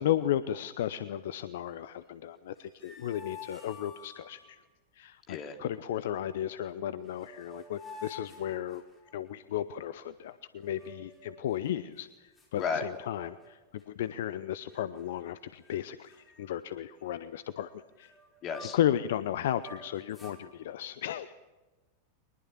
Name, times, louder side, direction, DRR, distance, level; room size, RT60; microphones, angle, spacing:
voice 1, 0.0-4.6 5.0-8.8 9.1-12.1 12.5-13.6 13.9-18.1 18.7-21.3, left 11 dB, 55° left, 15 dB, 0.7 m, -34 dB
sound 1, 2.5-4.5 6.7-6.8 7.1-9.3 10.6-11.4 12.0-12.1 12.4-13.5 13.8-14.1 14.7-15.3 15.6-15.8 16.1-19.0 19.3-20.4, left 3 dB, 15° left, 7.5 m, -50 dB
voice 2, 18.4-18.8, left 5 dB, 35° left, 5 dB, 3.2 m, -33 dB
23.0 x 20.5 x 7.2 m, 1.2 s
figure-of-eight pair, 90°, 0 cm